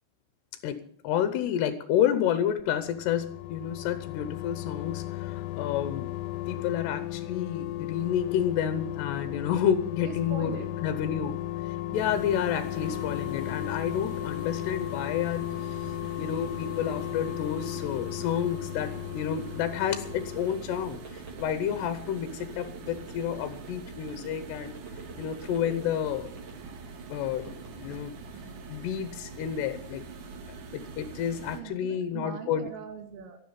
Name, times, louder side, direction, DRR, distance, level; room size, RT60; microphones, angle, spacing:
voice 1, 0.6-6.1 6.5-11.4 11.7-15.4 15.7-15.8 16.2-24.8 25.2-26.3 27.1-27.5 27.8-28.2 28.7-30.0 30.5-32.7, left 9 dB, 75° left, 10 dB, 2.7 m, -30 dB
sound 1, 2.6-21.1 21.4-21.5, left 14 dB, 90° left, 3.4 m, -35 dB
voice 2, 10.0-10.7 11.9-12.2 21.7-21.8 28.3-28.9 31.5-33.4, right 6 dB, 80° right, 6 dB, 4.7 m, -42 dB
sound 2, 11.9-31.6, right 4 dB, 60° right, 2.1 m, -44 dB
sound 3, 18.6-26.8 27.2-28.0, right 4 dB, 30° right, 4.3 m, -47 dB
12.5 x 11.5 x 8.8 m, 0.62 s
omnidirectional pair, 5.7 m